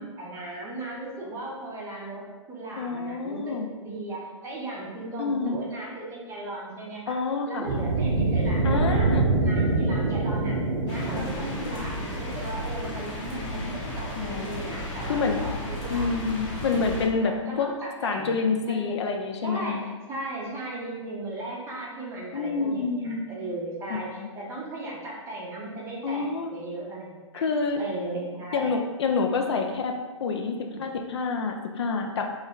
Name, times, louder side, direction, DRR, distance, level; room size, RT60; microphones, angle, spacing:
voice 1, 0.0-7.2 7.5-10.6 10.8-16.2 17.2-19.0 19.4-19.8 20.1-27.4 27.8-28.7 30.6-30.9, right 2 dB, 15° right, -3 dB, 0.6 m, -36 dB
voice 2, 2.8-3.7 5.2-5.7 7.1-7.7 8.6-9.2 11.0-11.1 11.6-11.7 14.2-15.4 15.9-17.7 18.0-19.8 22.3-23.2 23.9-24.3 26.0-26.5 27.3-27.8 28.5-29.9 30.2-32.3, left 4 dB, 55° left, 4 dB, 0.4 m, -28 dB
sound 1, 7.6-12.6, right 3 dB, 70° right, 0.6 m, -25 dB
sound 2, 10.9-17.1, left 1 dB, 30° left, 0.8 m, -34 dB
3.2 x 2.1 x 3.5 m, 1.3 s
figure-of-eight pair, 120°, 17 cm